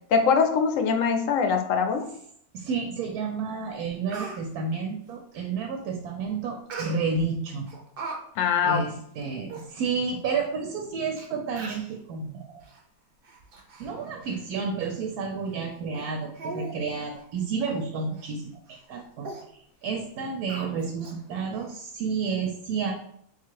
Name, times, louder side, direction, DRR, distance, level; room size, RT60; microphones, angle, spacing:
voice 1, 0.1-2.1 8.4-8.8, left 6 dB, 70° left, 5 dB, 0.9 m, -22 dB
voice 2, 2.5-7.7 8.6-12.6 13.8-22.9, right 5 dB, 85° right, 2 dB, 1.1 m, -31 dB
Speech, 3.4-3.5 3.8-4.4 6.7-7.3 7.7-8.2 8.5-8.7 9.2-9.3 9.5-9.7 10.4-10.5 11.2-11.3 11.6-11.9 12.6-12.8 13.2-13.9 14.2-14.4 14.8-14.9 15.5-15.6 15.9-16.1 16.4-16.8 17.1-17.2 17.6-17.8 18.2-18.3 18.7-18.9 19.2-19.4 20.5-21.2 21.5-21.6, right 4 dB, 50° right, 0.7 m, -39 dB
3.7 x 2.4 x 4.6 m, 0.70 s
omnidirectional pair, 1.6 m